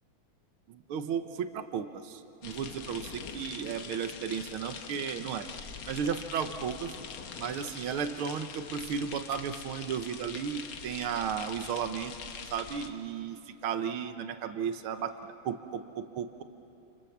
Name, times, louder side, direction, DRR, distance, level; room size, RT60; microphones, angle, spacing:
voice 1, 0.7-5.5 5.9-7.0 7.4-12.1 12.5-13.4 13.6-15.1 15.5-16.4, right 7 dB, 85° right, 9 dB, 1.9 m, -34 dB
sound 1, 2.4-12.9, left 6 dB, 80° left, 2.1 m, -43 dB
29.0 x 27.0 x 7.2 m, 2.9 s
omnidirectional pair, 2.3 m